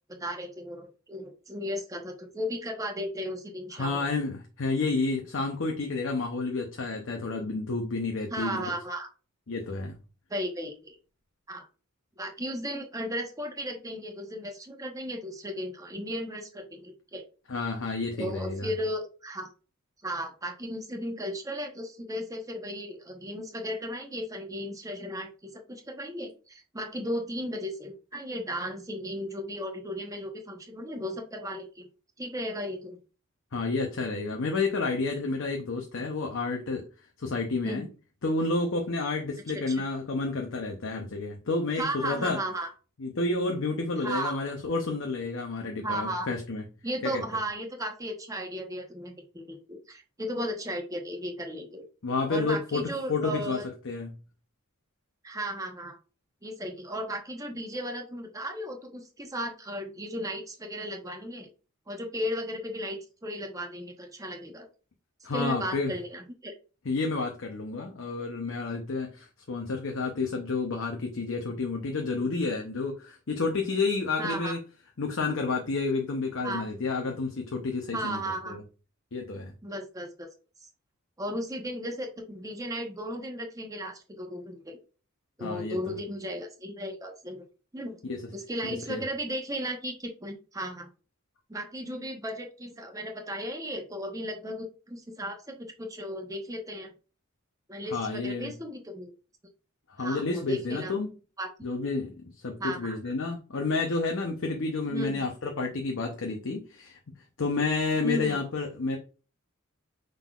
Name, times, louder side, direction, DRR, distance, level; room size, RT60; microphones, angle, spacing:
voice 1, 0.1-4.1 8.3-9.1 10.3-11.0 11.5-11.7 12.2-17.2 18.2-19.5 20.0-31.9 32.2-33.0 37.6-37.8 39.7-39.8 41.8-42.7 44.0-44.4 45.8-46.3 46.8-51.9 52.3-53.7 55.2-56.0 56.4-61.5 61.9-64.7 65.3-66.5 74.2-74.5 76.4-76.6 77.9-78.6 79.6-80.3 80.6-80.7 81.2-84.8 85.4-87.4 87.7-88.0 88.3-90.9 91.5-96.9 97.7-99.1 100.0-100.9 101.4-101.5 102.6-102.9 104.9-105.2 108.0-108.4, equal, 15° right, 1.0 m, -35 dB
voice 2, 3.7-8.7 9.5-10.0 17.5-18.7 33.5-36.9 37.2-37.9 38.2-42.4 43.0-46.6 47.0-47.2 52.0-54.1 65.2-65.9 66.8-74.6 75.0-78.6 79.1-79.5 85.4-86.0 88.0-88.3 88.6-89.0 97.9-98.5 100.0-101.1 101.6-107.0 107.4-109.0, left 3 dB, 65° left, 0.7 m, -30 dB
5.5 x 3.8 x 2.4 m
head